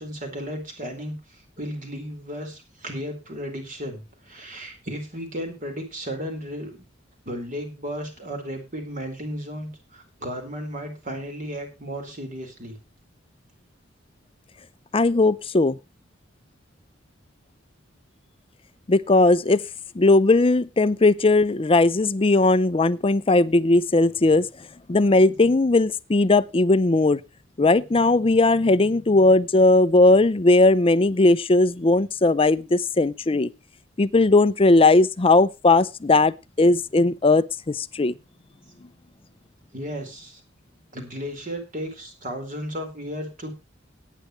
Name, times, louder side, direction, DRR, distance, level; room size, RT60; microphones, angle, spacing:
voice 1, 0.0-6.9 7.2-12.8 39.7-40.4 40.9-43.5, equal, 45° right, 4.3 m, -34 dB
voice 2, 14.9-15.8 18.9-19.6 19.9-24.5 24.9-27.2 27.6-33.5 34.0-38.1, left 2 dB, 30° left, 0.6 m, -18 dB
18.0 x 9.4 x 3.1 m
head